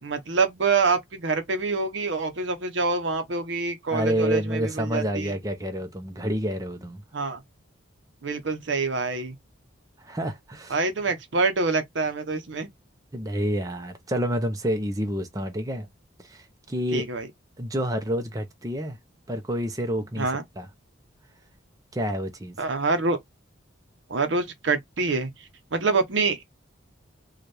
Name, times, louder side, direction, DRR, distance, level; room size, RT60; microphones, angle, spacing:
voice 1, 0.0-5.3 7.1-7.4 8.2-9.3 10.7-12.7 16.9-17.3 20.2-20.4 22.6-23.2 24.1-25.3 25.7-26.4, right 4 dB, 65° right, 0.8 m, -26 dB
voice 2, 3.9-7.0 10.0-10.8 13.1-15.9 16.2-17.0 17.6-19.0 19.3-20.7 21.9-22.6, equal, 20° right, 0.7 m, -28 dB
4.3 x 2.4 x 3.2 m
head